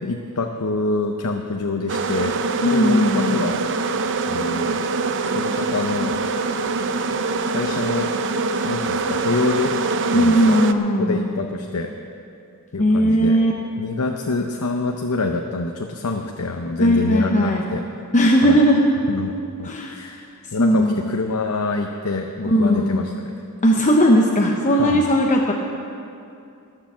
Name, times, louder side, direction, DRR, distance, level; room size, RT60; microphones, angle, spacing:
voice 1, 0.0-2.3 2.7-3.6 4.3-4.9 5.2-6.1 7.5-8.1 8.6-9.7 10.1-10.6 11.0-11.9 12.7-13.4 13.8-17.9 18.4-18.6 19.1-23.3 24.7-25.0, left 3 dB, 85° left, 3 dB, 0.8 m, -26 dB
sound 1, 1.9-10.7, right 3 dB, 55° right, 0.6 m, -24 dB
voice 2, 2.6-3.5 10.1-11.2 12.8-13.5 16.8-17.6 18.1-18.9 19.6-19.9 20.6-21.0 22.5-23.1 23.6-25.5, equal, 35° left, 1 dB, 0.8 m, -17 dB
19.0 x 6.9 x 7.3 m, 2.6 s
head